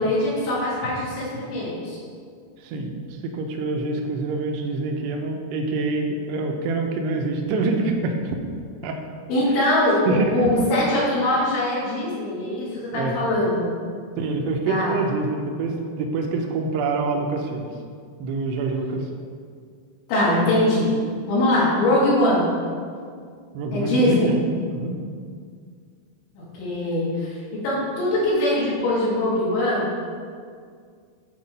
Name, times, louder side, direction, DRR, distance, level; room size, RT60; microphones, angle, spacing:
voice 1, 0.0-2.0 9.3-13.8 14.7-15.0 20.1-20.9 21.3-22.5 23.7-24.4 26.4-29.9, left 1 dB, 70° left, -8 dB, 4.8 m, -22 dB
voice 2, 3.3-8.4 8.8-9.0 10.1-10.6 11.2-11.4 12.9-13.2 14.2-17.7 18.2-19.0 23.5-24.4 24.7-25.0, right 3 dB, 80° right, 2 dB, 2.6 m, -26 dB
10.0 x 4.7 x 5.3 m, 2.1 s
omnidirectional pair, 5.4 m